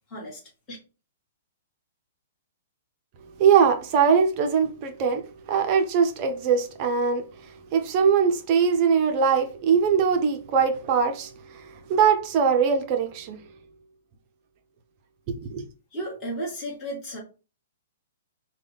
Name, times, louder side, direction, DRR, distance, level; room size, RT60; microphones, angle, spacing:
voice 1, 0.1-0.4 0.7-0.8 15.9-17.2, right 1 dB, 10° left, 1.6 m, -33 dB
voice 2, 3.4-7.2 7.7-11.3 11.9-13.4 15.5-15.7, right 6 dB, 30° right, 0.6 m, -21 dB
5.4 x 2.2 x 3.4 m
hypercardioid pair, 160°, 0 cm